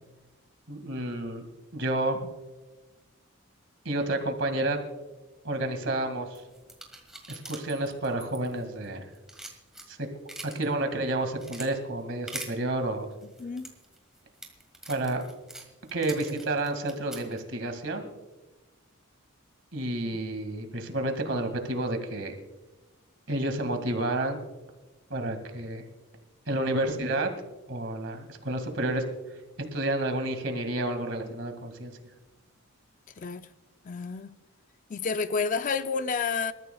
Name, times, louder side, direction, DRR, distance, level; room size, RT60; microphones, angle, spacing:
voice 1, 0.7-1.5 1.7-2.3 3.9-4.8 5.4-6.4 7.3-9.1 9.9-10.0 10.4-13.1 14.9-15.2 15.9-18.0 19.7-22.3 23.3-24.4 25.1-25.8 26.5-27.3 27.7-29.0 29.6-31.9, right 1 dB, 60° right, 2.0 m, -30 dB
sound 1, 6.3-8.9 9.1-10.7 11.1-11.7 12.3-12.5 13.2-17.4, right 1 dB, ahead, 1.7 m, -43 dB
voice 2, 13.4-13.7 33.2-33.5 33.8-34.4 34.9-36.5, left 5 dB, 35° left, 0.4 m, -30 dB
27.5 x 14.0 x 2.3 m
head